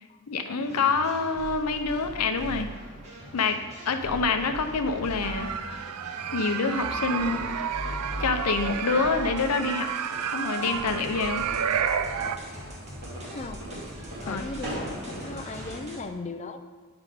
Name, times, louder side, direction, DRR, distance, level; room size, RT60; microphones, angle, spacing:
voice 1, 0.3-2.7 3.3-3.6 3.9-5.5 6.3-7.4 8.2-9.9 10.3-11.5 14.3-14.4, left 4 dB, 85° left, 7 dB, 0.6 m, -26 dB
sound 1, 0.6-16.0, equal, 30° right, 1.5 m, -41 dB
sound 2, 5.2-12.4, right 7 dB, 90° right, 0.4 m, -31 dB
sound 3, 6.8-15.7, equal, 45° right, 2.5 m, -42 dB
voice 2, 14.2-16.6, left 3 dB, 30° left, 7 dB, 0.4 m, -37 dB
9.6 x 3.7 x 4.9 m, 1.4 s
head